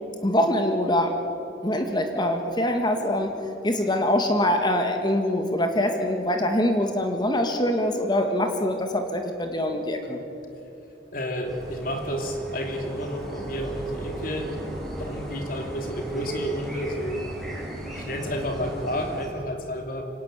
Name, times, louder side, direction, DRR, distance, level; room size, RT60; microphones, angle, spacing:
voice 1, 0.2-1.1 1.6-3.3 3.6-10.2, left 1 dB, 25° left, 5 dB, 1.8 m, -24 dB
voice 2, 11.1-14.6 15.0-17.2 17.9-20.1, equal, 50° left, 4 dB, 3.0 m, -31 dB
sound 1, 11.4-19.3, right 1 dB, ahead, 6.3 m, -36 dB
24.5 x 18.5 x 8.3 m, 2.8 s
head